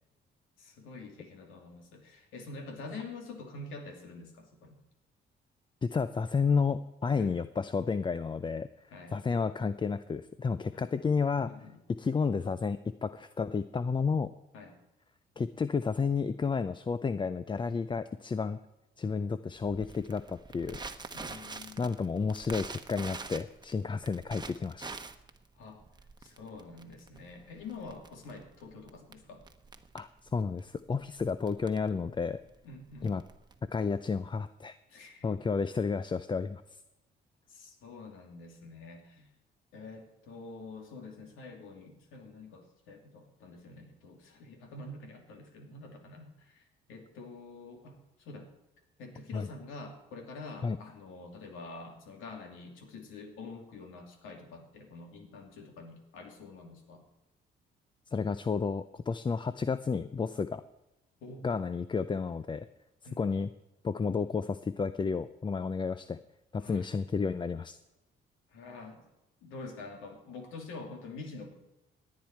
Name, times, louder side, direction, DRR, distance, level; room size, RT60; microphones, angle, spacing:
voice 1, 0.6-4.8 7.2-7.3 8.9-9.2 10.7-10.8 11.5-11.8 14.5-14.7 19.0-19.3 21.1-21.8 25.6-25.8 26.2-29.4 32.6-33.2 34.9-35.4 37.5-39.3 39.7-46.6 46.9-48.5 49.0-57.0 61.2-61.5 63.1-63.3 66.6-66.9 68.5-69.0 69.4-71.5, left 3 dB, 90° left, 3 dB, 2.7 m, -46 dB
voice 2, 5.8-8.7 9.1-11.5 11.9-14.3 15.4-18.6 19.0-20.8 21.8-25.0 29.9-32.4 33.0-33.2 33.7-34.8 35.2-36.6 49.3-49.5 50.6-50.8 58.1-60.6 61.4-62.7 63.2-63.5 63.8-66.2 66.5-67.8, left 5 dB, 25° left, 13 dB, 0.5 m, -31 dB
Crackle, 19.7-33.9, right 4 dB, 20° right, 1.0 m, -46 dB
17.5 x 9.6 x 4.5 m, 0.94 s
cardioid pair, 90°, 20 cm